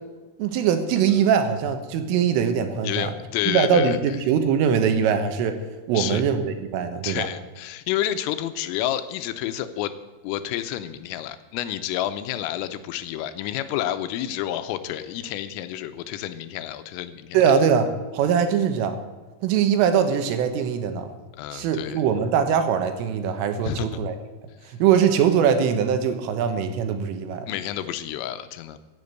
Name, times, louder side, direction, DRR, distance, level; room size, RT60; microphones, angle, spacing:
voice 1, 0.4-3.1 3.5-5.6 5.9-7.3 17.3-19.0 19.4-21.1 21.5-24.2 24.7-27.5, right 7 dB, 80° right, 7 dB, 3.8 m, -22 dB
voice 2, 2.8-4.2 6.0-6.2 7.0-9.9 10.2-17.4 21.4-22.0 23.6-24.0 27.5-28.8, left 12 dB, 90° left, 11 dB, 3.4 m, -29 dB
16.0 x 8.8 x 8.1 m, 1.3 s
omnidirectional pair, 5.8 m